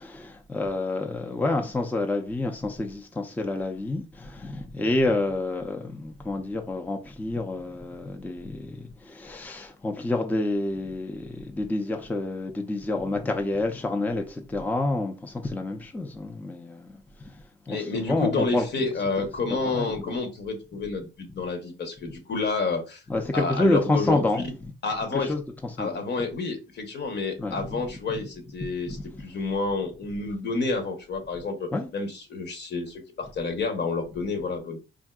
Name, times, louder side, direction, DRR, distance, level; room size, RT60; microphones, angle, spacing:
voice 1, 0.0-18.8 19.2-19.3 19.7-20.2 23.1-24.7 25.1-26.0 27.4-27.8 28.1-28.2 28.9-29.0 31.7-31.9, left 2 dB, 10° left, 0.4 m, -29 dB
voice 2, 17.7-23.0 23.3-24.4 24.8-25.3 25.8-34.8, left 3 dB, 60° left, 1.0 m, -29 dB
3.6 x 2.5 x 2.3 m
cardioid pair, 90°, 20 cm